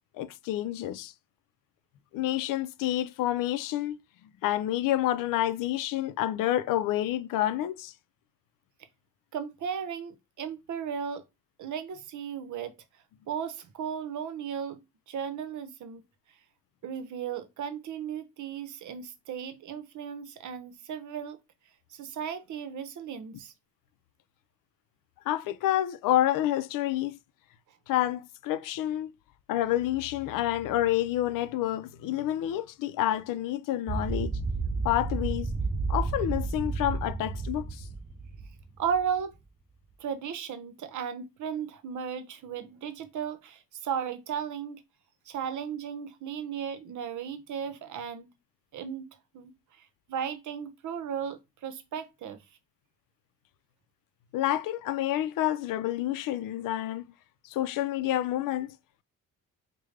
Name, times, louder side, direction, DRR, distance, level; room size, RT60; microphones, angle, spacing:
voice 1, 0.2-1.1 2.1-4.0 4.4-7.9 25.3-27.2 27.9-29.1 29.5-34.4 34.8-35.5 35.9-37.9 54.3-57.1 57.4-58.8, left 13 dB, 85° left, 0.5 m, -28 dB
voice 2, 9.3-11.2 11.6-12.7 13.3-14.8 15.1-16.0 16.8-21.4 21.9-23.5 38.8-39.3 40.0-44.8 45.3-48.3 48.7-49.0 49.3-49.5 49.8-52.4, right 7 dB, 65° right, 0.7 m, -35 dB
sound 1, 33.9-39.0, right 3 dB, 20° right, 0.4 m, -31 dB
4.9 x 2.2 x 3.2 m
cardioid pair, 110°, 32 cm